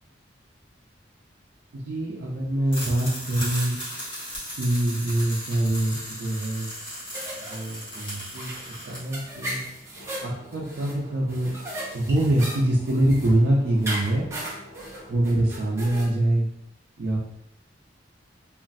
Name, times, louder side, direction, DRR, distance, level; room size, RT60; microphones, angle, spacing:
voice 1, 1.7-3.8 4.6-6.7 7.5-8.5 8.9-9.6 10.2-11.5 11.9-14.3 15.1-16.5 17.0-17.2, right 1 dB, 70° right, -5 dB, 0.5 m, -24 dB
sound 1, 2.7-9.0, equal, 30° left, 1.4 m, -36 dB
sound 2, 7.1-16.1, right 1 dB, 15° right, 0.7 m, -37 dB
sound 3, 9.9-15.2, equal, 45° left, 0.5 m, -47 dB
3.0 x 2.4 x 2.5 m, 0.74 s
head